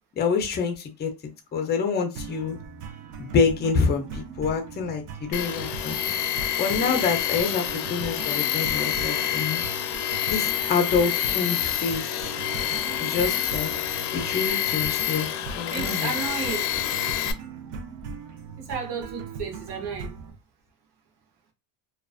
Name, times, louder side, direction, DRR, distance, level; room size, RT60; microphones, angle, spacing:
voice 1, 0.2-1.1 1.5-2.6 3.2-6.0 6.6-9.6 10.3-12.3 13.0-13.7 14.1-15.3 15.6-16.1, left 5 dB, 25° left, 0.5 m, -26 dB
sound 1, 2.2-20.3, right 5 dB, 45° right, 0.5 m, -39 dB
Tools, 5.3-17.3, left 11 dB, 70° left, 0.5 m, -27 dB
voice 2, 15.7-16.7 18.6-20.1, right 6 dB, 65° right, 0.9 m, -33 dB
2.3 x 2.3 x 2.3 m
cardioid pair, 130°, 43 cm